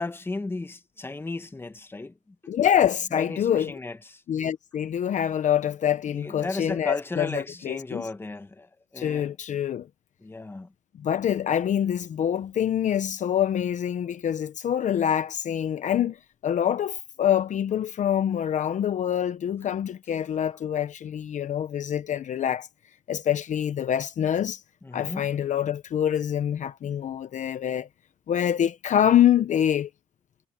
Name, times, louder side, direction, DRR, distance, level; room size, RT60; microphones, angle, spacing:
voice 1, 0.0-2.2 3.1-4.2 6.1-9.3 10.2-10.7 24.8-25.3, left 3 dB, 15° left, 1.3 m, -35 dB
voice 2, 2.5-3.7 4.3-8.1 9.0-9.9 11.0-16.2 16.4-22.7 23.1-24.6 24.9-27.9 28.3-29.9, left 10 dB, 45° left, 0.9 m, -25 dB
cardioid pair, 110°, 17 cm